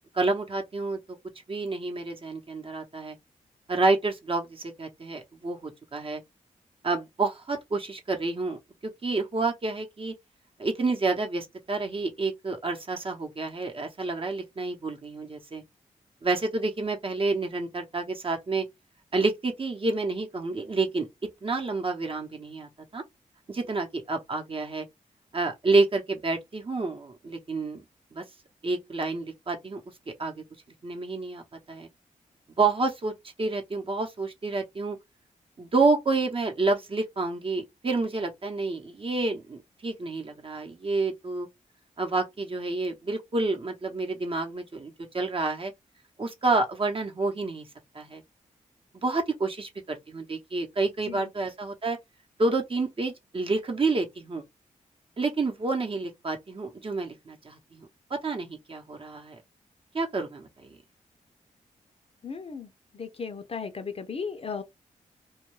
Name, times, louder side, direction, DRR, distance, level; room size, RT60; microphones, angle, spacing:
voice 1, 0.1-1.0 1.5-3.2 3.7-6.2 6.8-10.1 10.6-15.6 16.2-18.7 19.1-21.1 21.4-23.0 23.5-24.8 25.3-27.8 28.1-28.2 28.6-29.8 30.2-30.4 30.8-31.9 32.6-33.1 33.4-35.0 35.6-41.5 42.0-45.7 46.2-47.7 47.9-48.2 49.0-52.0 52.4-54.4 55.2-59.4 59.9-60.8, right 3 dB, 40° right, 0.8 m, -29 dB
voice 2, 62.2-62.7 63.0-64.6, left 5 dB, 45° left, 0.5 m, -35 dB
2.2 x 2.2 x 3.1 m
cardioid pair, 60°, 14 cm